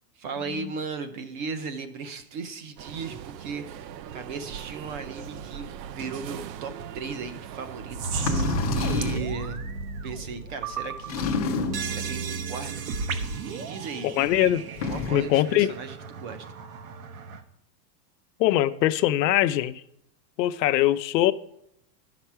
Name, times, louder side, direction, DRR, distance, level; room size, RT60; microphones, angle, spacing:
voice 1, 0.2-9.6 10.0-11.4 11.9-14.1 14.9-16.5, right 5 dB, 30° right, 0.6 m, -37 dB
sound 1, 2.8-9.2, right 10 dB, 85° right, 0.7 m, -41 dB
sound 2, 5.2-6.1 6.6-6.7 7.2-7.3 7.9-17.4, right 4 dB, 55° right, 0.9 m, -34 dB
sound 3, 8.1-9.4 11.1-12.0 14.6-15.3, left 5 dB, 25° left, 0.4 m, -29 dB
voice 2, 14.0-14.6 15.1-15.7 18.4-19.8 20.4-21.3, left 14 dB, 85° left, 0.7 m, -22 dB
10.5 x 5.9 x 4.5 m
supercardioid pair, 175°, 49 cm